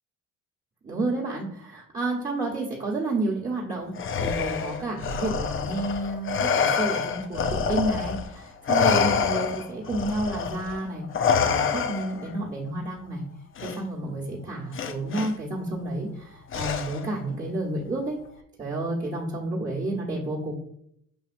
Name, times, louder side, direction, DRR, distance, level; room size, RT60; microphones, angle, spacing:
voice 1, 0.8-11.0 11.4-13.2 13.6-18.2 18.6-20.5, right 2 dB, 25° right, -6 dB, 1.2 m, -30 dB
Respiratory sounds, 4.0-8.3 8.7-12.3 13.6-13.8 14.7-15.3 16.5-17.2, left 6 dB, 40° left, 0.5 m, -26 dB
7.1 x 2.7 x 2.5 m, 0.73 s
supercardioid pair, 75°, 32 cm